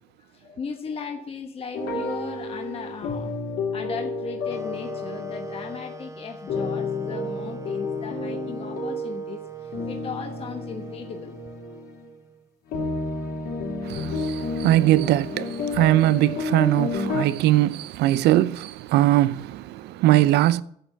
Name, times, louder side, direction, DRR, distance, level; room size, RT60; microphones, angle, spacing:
voice 1, 0.3-11.4, left 5 dB, 35° left, 1.1 m, -37 dB
sound 1, 1.7-6.0 6.5-12.1 12.7-17.2, left 3 dB, 75° left, 3.9 m, -31 dB
sound 2, 4.5-12.5, right 2 dB, 15° right, 0.8 m, -43 dB
voice 2, 13.9-20.6, right 15 dB, 80° right, 0.5 m, -21 dB
10.5 x 6.9 x 7.2 m
cardioid pair, 110°, 17 cm